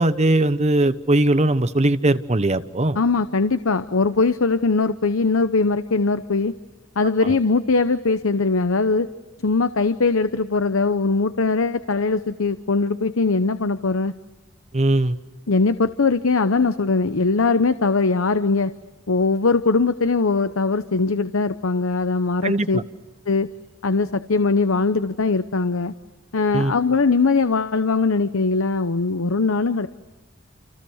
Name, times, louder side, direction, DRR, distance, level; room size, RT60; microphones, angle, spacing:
voice 1, 0.0-3.0 14.7-15.2 22.4-22.8 26.5-26.7, right 1 dB, 35° right, 12 dB, 1.1 m, -19 dB
voice 2, 3.0-6.6 7.0-9.1 9.4-14.1 15.5-18.7 19.1-22.8 23.3-23.5 23.8-25.9 26.3-29.9, left 3 dB, 85° left, 12 dB, 0.9 m, -21 dB
30.0 x 28.5 x 6.5 m, 1.1 s
head